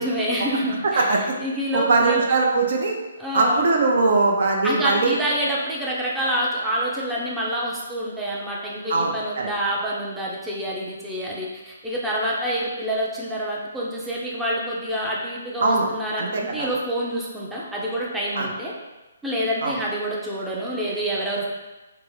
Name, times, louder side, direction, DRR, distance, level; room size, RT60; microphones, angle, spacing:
voice 1, 0.0-1.1 1.4-2.2 3.2-3.7 4.6-18.7 19.2-21.5, equal, 5° right, -6 dB, 0.5 m, -27 dB
voice 2, 0.8-1.3 1.7-2.9 3.3-5.2 8.9-9.5 15.6-15.9 16.2-16.7 18.3-18.5 19.6-19.8, right 3 dB, 60° right, 0 dB, 0.5 m, -21 dB
3.4 x 2.0 x 3.1 m, 1.1 s
hypercardioid pair, 140°, 0 cm